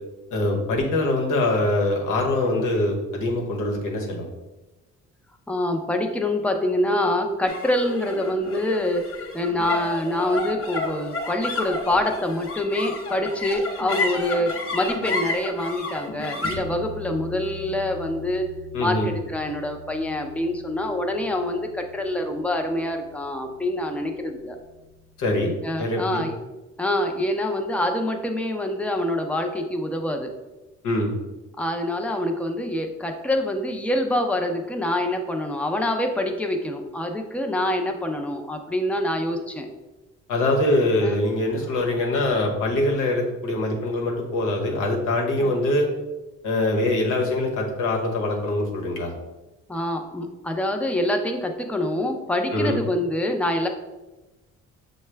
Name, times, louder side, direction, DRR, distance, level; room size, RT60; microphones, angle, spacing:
voice 1, 0.3-4.3 18.7-19.1 25.2-26.2 30.8-31.1 40.3-45.9 46.4-49.1 52.5-52.8, left 1 dB, 85° left, 1 dB, 1.0 m, -23 dB
voice 2, 5.5-9.0 9.3-18.5 18.8-24.6 25.6-26.3 26.8-30.3 31.6-39.7 41.0-41.2 41.6-41.7 45.4-45.6 49.7-53.7, left 1 dB, 5° left, 4 dB, 0.5 m, -25 dB
sound 1, 7.5-24.0, left 3 dB, 45° left, 0.8 m, -33 dB
6.3 x 2.2 x 3.3 m, 1.1 s
cardioid pair, 90°, 30 cm